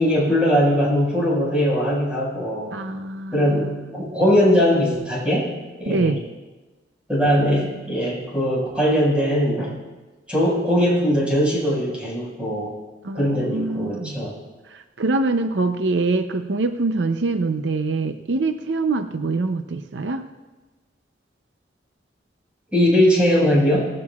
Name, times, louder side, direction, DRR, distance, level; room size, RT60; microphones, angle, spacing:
voice 1, 0.0-2.7 3.3-5.5 5.8-6.1 7.1-9.7 10.3-12.7 13.1-14.3 22.7-23.9, equal, 5° right, -5 dB, 5.2 m, -20 dB
voice 2, 2.7-3.7 5.9-6.2 13.0-14.2 14.7-20.3, right 3 dB, 80° right, 8 dB, 0.6 m, -24 dB
18.5 x 15.5 x 2.4 m, 1.2 s
head